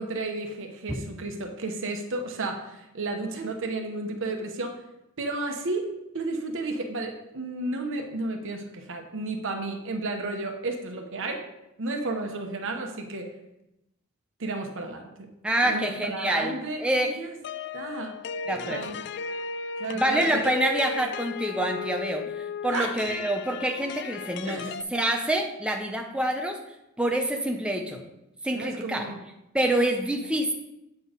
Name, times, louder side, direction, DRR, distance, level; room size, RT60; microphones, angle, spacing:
voice 1, 0.0-4.8 5.2-5.9 6.1-11.5 11.8-13.3 14.4-15.3 15.6-17.3 17.7-18.2 18.5-19.0 19.8-20.5 22.7-23.0 24.4-24.7 28.5-29.2, right 2 dB, 60° right, 4 dB, 1.1 m, -32 dB
voice 2, 15.4-16.5 16.8-17.2 18.5-18.8 19.9-26.6 27.0-28.0 28.4-29.1 29.5-30.5, right 1 dB, 5° right, 2 dB, 0.6 m, -26 dB
sound 1, 17.4-24.8, left 5 dB, 55° left, 0.3 m, -35 dB
8.3 x 4.6 x 5.1 m, 0.89 s
head